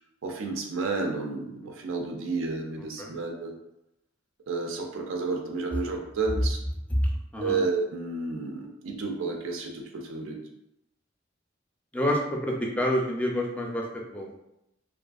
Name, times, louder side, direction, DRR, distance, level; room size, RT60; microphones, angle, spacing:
voice 1, 0.2-3.5 4.5-6.6 7.4-10.4, right 3 dB, 85° right, 2 dB, 0.4 m, -31 dB
voice 2, 6.9-7.6 11.9-14.4, equal, 5° left, -1 dB, 0.4 m, -28 dB
2.6 x 2.4 x 2.3 m, 0.85 s
head